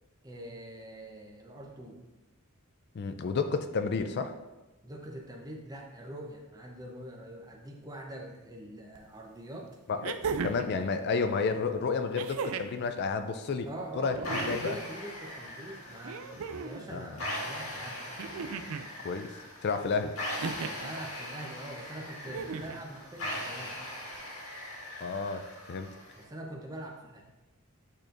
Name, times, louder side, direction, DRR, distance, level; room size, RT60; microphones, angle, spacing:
voice 1, 0.2-2.0 4.8-9.7 13.6-18.0 20.8-23.8 26.1-27.3, right 1 dB, 15° right, 1 dB, 0.8 m, -44 dB
voice 2, 2.9-4.3 9.9-10.2 10.4-13.7 13.9-14.2 14.5-14.8 16.9-17.1 19.0-19.3 19.6-20.1 25.0-25.9, left 4 dB, 50° left, 8 dB, 0.4 m, -31 dB
sound 1, 8.9-9.0 10.0-10.7 12.1-12.8 14.1-14.8 16.0-16.8 18.2-18.9 20.4-20.9 22.2-22.8 24.1-24.2, right 5 dB, 80° right, 0.4 m, -36 dB
sound 2, 14.2-26.2, left 1 dB, 75° left, 1.8 m, -40 dB
8.8 x 4.3 x 2.6 m, 1.1 s
head